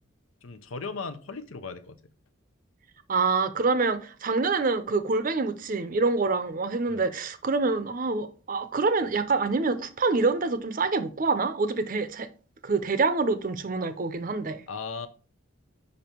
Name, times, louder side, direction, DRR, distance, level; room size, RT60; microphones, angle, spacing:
voice 1, 0.4-2.0 6.9-7.0 14.7-15.1, left 4 dB, 90° left, 0.7 m, -37 dB
voice 2, 3.1-12.3 12.6-14.6, right 3 dB, 40° right, 0.6 m, -26 dB
5.4 x 5.2 x 4.4 m
head